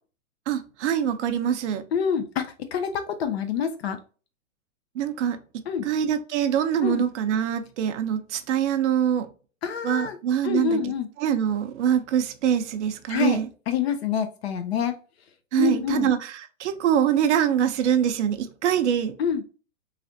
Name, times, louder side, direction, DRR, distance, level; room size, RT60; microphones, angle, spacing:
voice 1, 0.5-1.8 4.9-9.3 9.8-10.9 11.2-13.5 15.5-19.1, right 9 dB, 60° right, 0.6 m, -24 dB
voice 2, 1.9-4.0 5.7-5.9 6.8-7.0 9.6-10.2 10.4-11.1 13.1-13.4 13.7-14.9 15.6-16.1 19.2-19.4, left 7 dB, 50° left, 0.5 m, -26 dB
3.2 x 2.4 x 2.6 m
hypercardioid pair, 130°, 40 cm